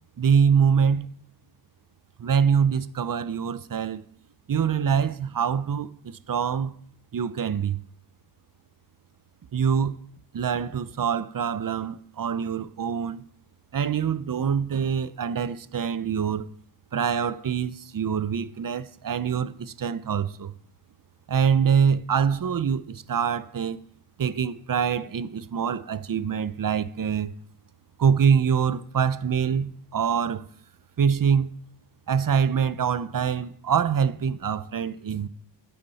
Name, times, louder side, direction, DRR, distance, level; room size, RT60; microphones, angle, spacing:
voice 1, 0.2-1.1 2.2-4.0 4.5-6.7 7.1-7.8 9.5-9.9 10.3-13.2 13.7-16.5 16.9-20.5 21.3-23.8 24.2-27.3 28.0-30.5 31.0-31.5 32.1-35.3, right 7 dB, 45° right, 0.7 m, -24 dB
13.0 x 8.6 x 4.1 m
cardioid pair, 55°, 47 cm